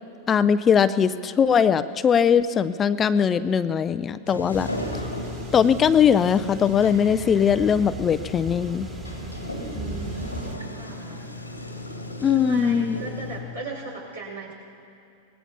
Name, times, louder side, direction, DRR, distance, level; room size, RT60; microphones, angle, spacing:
voice 1, 0.3-4.7 5.5-8.9 12.2-13.0, left 7 dB, 25° left, 14 dB, 0.4 m, -20 dB
Sliding door, 4.3-13.4, left 1 dB, 85° left, 1.6 m, -36 dB
sound 1, 4.5-10.5, right 3 dB, 15° right, 1.8 m, -38 dB
voice 2, 9.6-11.2 11.6-11.7 12.3-14.5, right 3 dB, 75° right, -2 dB, 5.1 m, -36 dB
25.0 x 19.0 x 2.9 m, 2.7 s
figure-of-eight pair, 90°, 0 cm